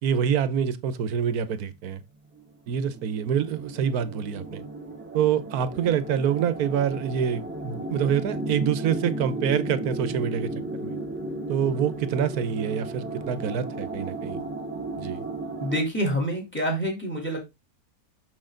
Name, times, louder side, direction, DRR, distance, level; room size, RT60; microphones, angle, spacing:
voice 1, 0.0-2.0 2.7-4.6 5.1-10.5 10.8-11.0 11.5-14.4 15.0-15.3, right 8 dB, 80° right, 1.3 m, -26 dB
sound 1, 2.4-2.5 2.7-15.8, right 2 dB, 10° right, 1.1 m, -34 dB
voice 2, 15.6-17.4, equal, 5° left, 3.3 m, -27 dB
6.7 x 6.4 x 3.8 m
omnidirectional pair, 1.6 m